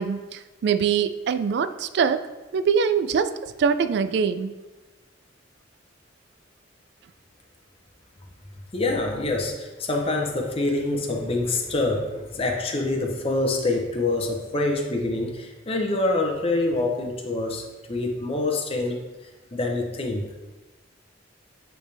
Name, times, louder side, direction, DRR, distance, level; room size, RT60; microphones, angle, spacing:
voice 1, 0.0-2.3 2.5-4.5, right 6 dB, 60° right, 13 dB, 0.3 m, -23 dB
voice 2, 8.7-19.0 19.5-20.3, left 2 dB, 30° left, 1 dB, 0.7 m, -26 dB
9.0 x 3.4 x 3.4 m, 1.2 s
head